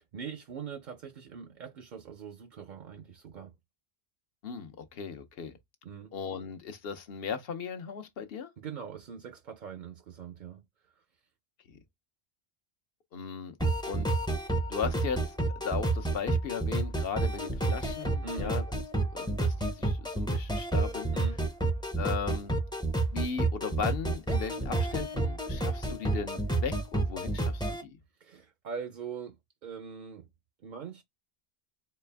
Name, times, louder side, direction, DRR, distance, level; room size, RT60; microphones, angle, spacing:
voice 1, 0.1-3.5 5.8-6.1 8.6-10.6 11.0-11.1 18.2-18.6 21.1-21.4 28.2-30.3 30.6-31.0, right 6 dB, 55° right, 0.6 m, -42 dB
voice 2, 4.4-5.5 6.1-8.5 11.7-11.8 13.1-13.6 13.9-14.1 14.7-18.6 19.1-21.1 22.0-22.5 23.1-28.0, left 6 dB, 65° left, 0.9 m, -37 dB
sound 1, 13.6-27.8, right 2 dB, 5° left, 0.5 m, -30 dB
4.2 x 2.2 x 3.3 m
omnidirectional pair, 1.1 m